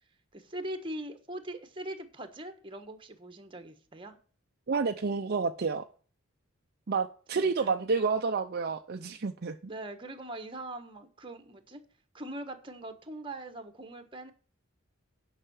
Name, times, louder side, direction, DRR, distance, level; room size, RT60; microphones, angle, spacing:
voice 1, 0.3-4.2 7.3-7.9 9.7-11.8 12.1-14.3, right 1 dB, 25° right, 1.3 m, -41 dB
voice 2, 4.7-5.9 6.9-9.6, right 4 dB, 45° right, 0.5 m, -29 dB
10.0 x 5.7 x 7.2 m
head